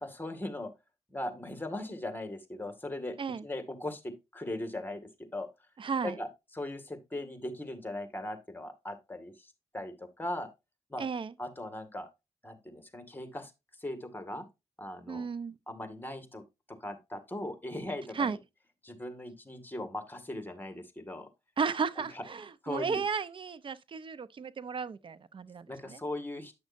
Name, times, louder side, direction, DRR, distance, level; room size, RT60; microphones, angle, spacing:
voice 1, 0.0-0.7 1.1-5.5 6.0-6.3 6.5-10.5 10.9-11.1 11.4-12.1 12.4-13.5 13.8-14.5 14.8-15.3 15.7-16.4 16.8-18.4 18.8-21.3 22.0-22.2 22.6-23.0 25.7-26.5, left 1 dB, 15° left, 1.9 m, -39 dB
voice 2, 5.8-6.2 11.0-11.3 15.1-15.6 18.1-18.4 21.6-26.0, right 5 dB, 50° right, 0.7 m, -34 dB
9.6 x 6.3 x 2.6 m
cardioid pair, 65°, 11 cm